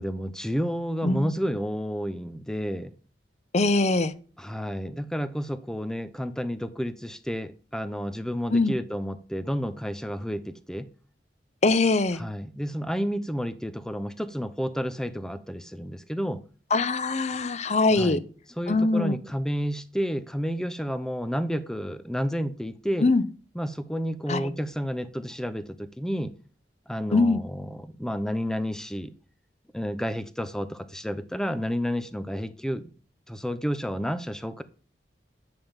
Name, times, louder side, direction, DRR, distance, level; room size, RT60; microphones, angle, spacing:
voice 1, 0.0-2.9 4.4-10.9 12.2-16.4 17.9-18.2 18.6-23.1 23.5-26.3 26.9-29.1 29.7-32.9 33.3-34.6, equal, 5° left, 0.7 m, -31 dB
voice 2, 1.0-1.4 3.5-4.1 8.5-8.7 11.6-12.2 16.7-18.2 18.7-19.2 23.0-23.2 24.3-24.5 27.1-27.4, left 3 dB, 40° left, 0.7 m, -22 dB
10.5 x 3.6 x 7.2 m
head